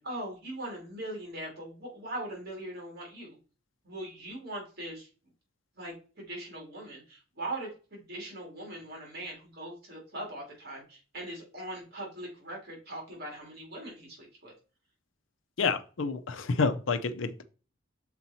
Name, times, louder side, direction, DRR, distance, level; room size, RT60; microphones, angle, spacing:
voice 1, 0.0-3.4 3.8-5.1 5.8-14.5, right 1 dB, 55° right, -1 dB, 3.0 m, -40 dB
voice 2, 15.6-17.4, left 4 dB, 90° left, 12 dB, 0.6 m, -29 dB
6.5 x 4.3 x 4.2 m, 0.36 s
head